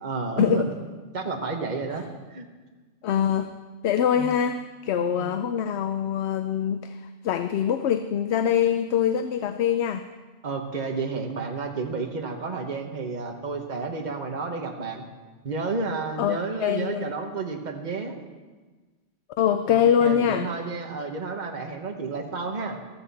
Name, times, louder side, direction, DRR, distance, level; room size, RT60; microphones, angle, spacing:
voice 1, 0.0-0.7 1.1-2.5 4.2-4.3 5.0-5.3 10.4-15.0 15.4-18.1 19.7-22.8, right 4 dB, 40° right, 3 dB, 1.3 m, -31 dB
voice 2, 3.0-3.5 3.8-10.0 16.2-17.1 19.4-20.5, left 9 dB, 70° left, 9 dB, 0.8 m, -24 dB
14.0 x 14.0 x 4.2 m, 1.3 s
omnidirectional pair, 1.2 m